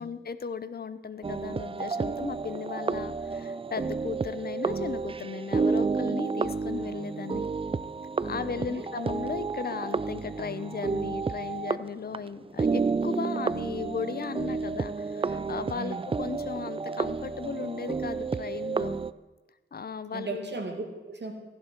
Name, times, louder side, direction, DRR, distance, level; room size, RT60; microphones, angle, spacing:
voice 1, 0.0-7.4 8.2-19.0 19.7-20.6, left 6 dB, 50° left, 13 dB, 0.7 m, -36 dB
sound 1, 1.2-12.2 12.5-19.1, right 4 dB, 25° right, 0.4 m, -31 dB
voice 2, 8.3-8.9 15.7-16.1 20.1-21.3, right 3 dB, 55° right, 3 dB, 2.3 m, -37 dB
15.5 x 11.0 x 4.5 m, 1.2 s
wide cardioid pair, 75°, 21 cm